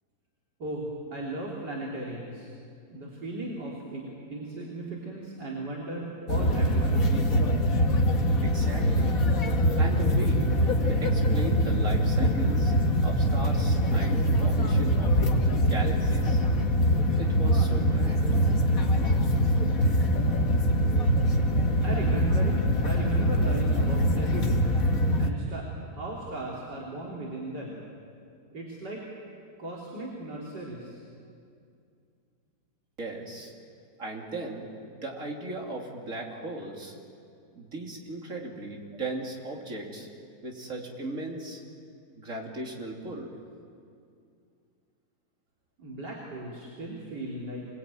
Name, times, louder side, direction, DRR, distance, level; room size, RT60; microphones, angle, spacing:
voice 1, 0.6-2.5 2.9-7.2 21.8-24.6 25.2-27.8 28.5-29.0 29.6-31.0 45.8-47.7, right 2 dB, 90° right, -5 dB, 3.8 m, -37 dB
sound 1, 6.3-25.3, equal, 55° left, 2.1 m, -23 dB
voice 2, 8.4-9.1 9.8-10.5 10.8-12.7 13.0-16.4 17.2-18.5 33.0-33.5 34.0-34.7 34.9-37.0 37.6-40.1 40.4-41.6 42.2-43.3, right 2 dB, 50° right, 0 dB, 3.5 m, -37 dB
27.0 x 19.5 x 9.1 m, 2.4 s
omnidirectional pair, 1.8 m